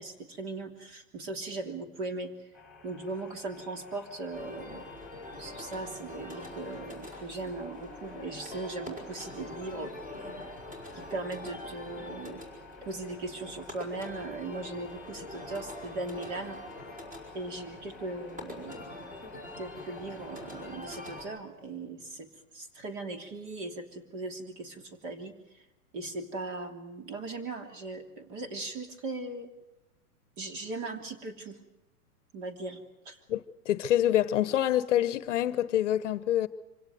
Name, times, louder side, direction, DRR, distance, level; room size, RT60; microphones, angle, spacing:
voice 1, 0.0-2.3 2.8-4.8 5.4-9.9 10.9-12.4 12.8-16.6 17.3-19.2 19.6-22.3 22.5-25.3 25.9-29.5 30.4-31.6 32.3-33.2, right 2 dB, 35° right, 3.1 m, -39 dB
sound 1, 2.5-21.4, left 3 dB, ahead, 5.0 m, -53 dB
sound 2, 4.3-21.2, left 2 dB, 15° right, 5.5 m, -44 dB
voice 2, 33.3-36.5, left 12 dB, 55° left, 1.1 m, -26 dB
25.5 x 17.0 x 9.3 m
supercardioid pair, 170°, 45 cm